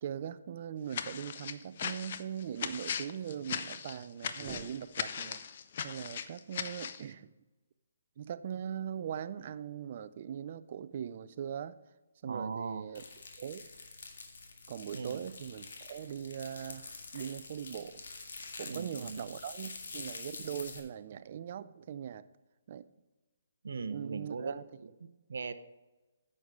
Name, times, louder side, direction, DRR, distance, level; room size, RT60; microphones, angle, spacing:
voice 1, 0.0-5.4 5.8-7.3 8.2-11.7 12.2-13.0 13.3-13.6 14.7-18.0 18.6-22.3 22.7-22.9 23.7-24.6, right 9 dB, 45° right, 14 dB, 0.5 m, -41 dB
sound 1, 0.9-7.0, left 7 dB, 50° left, 0.6 m, -38 dB
sound 2, 4.4-5.6, right 2 dB, 10° right, 1.1 m, -51 dB
voice 2, 12.2-12.9 14.9-15.2 18.7-19.2 23.6-25.5, right 4 dB, 70° right, 12 dB, 0.8 m, -39 dB
sound 3, 12.9-20.8, left 4 dB, 65° left, 1.8 m, -47 dB
9.8 x 6.6 x 4.8 m, 1.1 s
hypercardioid pair, 155°, 0 cm